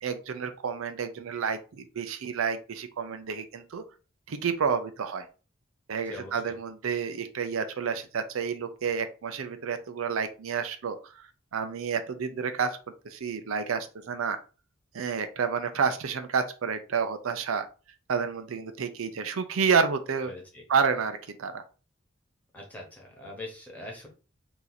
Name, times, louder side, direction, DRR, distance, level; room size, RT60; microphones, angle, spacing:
voice 1, 0.0-3.8 4.3-5.3 5.9-11.1 11.5-12.8 13.0-14.4 14.9-17.7 18.1-20.3 20.7-21.6, right 6 dB, 85° right, 9 dB, 0.5 m, -29 dB
voice 2, 6.1-6.5 20.3-20.6 22.5-24.1, left 1 dB, 10° left, -1 dB, 1.0 m, -42 dB
2.9 x 2.6 x 3.9 m, 0.34 s
head